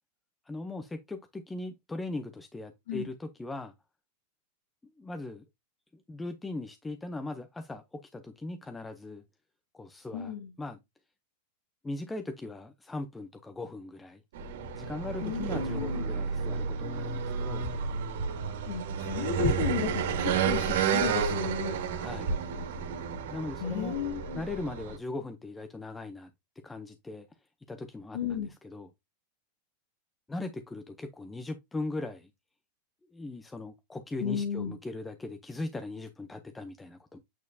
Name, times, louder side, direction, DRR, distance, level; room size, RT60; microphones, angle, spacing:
voice 1, 0.5-3.7 5.0-5.4 5.9-9.2 9.7-10.8 11.8-14.2 14.7-17.6 22.0-22.3 23.3-24.0 24.3-26.3 26.6-27.3 27.7-28.9 30.3-32.3 33.1-37.2, left 2 dB, 10° left, 0.6 m, -39 dB
voice 2, 10.1-10.5 15.2-16.1 18.7-21.8 23.6-24.4 28.1-28.5 34.2-34.7, left 7 dB, 80° left, 1.9 m, -33 dB
sound 1, 14.3-25.0, right 6 dB, 75° right, 1.9 m, -31 dB
8.4 x 4.4 x 2.7 m
supercardioid pair, 145°, 0 cm